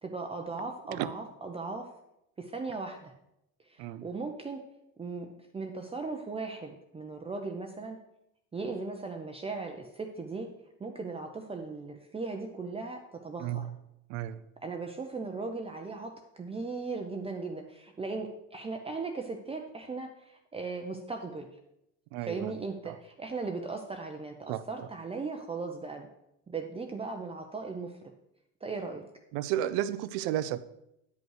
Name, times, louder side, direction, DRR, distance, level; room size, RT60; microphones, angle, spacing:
voice 1, 0.0-1.9 2.4-3.1 3.6-4.6 5.0-8.0 8.5-10.5 10.8-13.7 14.6-21.5 22.2-26.1 26.5-28.0 28.6-29.1, right 3 dB, 15° right, 3 dB, 0.6 m, -38 dB
voice 2, 13.4-13.7 14.1-14.4 22.1-22.6 22.8-23.0 24.5-24.6 29.3-30.6, right 12 dB, 80° right, 15 dB, 0.6 m, -32 dB
9.2 x 5.4 x 4.8 m, 0.84 s
cardioid pair, 110°, 37 cm